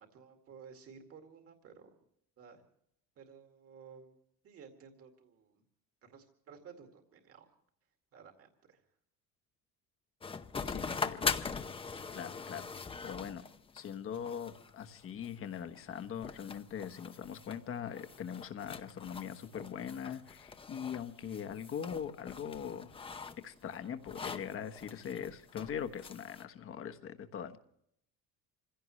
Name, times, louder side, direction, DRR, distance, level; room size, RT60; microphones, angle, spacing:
voice 1, 0.0-1.9 2.4-2.6 3.2-4.2 4.4-5.6 6.0-7.5 8.1-8.8, right 6 dB, 50° right, 4 dB, 2.2 m, -55 dB
sound 1, 10.2-26.4, left 5 dB, 20° left, 0.7 m, -42 dB
voice 2, 10.7-11.7 12.1-12.7 13.0-13.5 13.7-22.9 23.4-27.6, left 8 dB, 45° left, 8 dB, 1.2 m, -41 dB
27.0 x 16.0 x 3.2 m, 0.72 s
cardioid pair, 150°, 31 cm